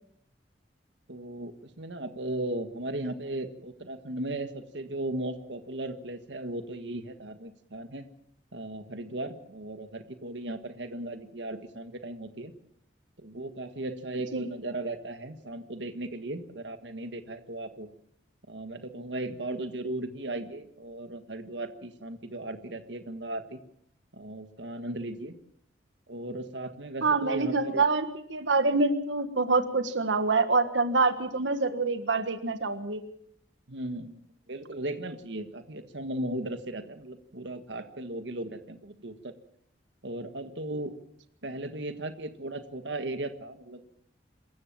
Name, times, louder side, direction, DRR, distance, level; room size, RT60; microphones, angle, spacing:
voice 1, 1.1-8.1 8.5-12.5 13.2-17.9 18.5-23.6 24.1-25.3 26.1-27.8 33.7-34.2 34.5-39.3 40.0-40.9 41.4-43.9, right 1 dB, 75° right, 9 dB, 1.6 m, -36 dB
voice 2, 27.0-33.0, right 3 dB, 90° right, 10 dB, 1.6 m, -26 dB
27.0 x 14.5 x 7.4 m, 0.68 s
head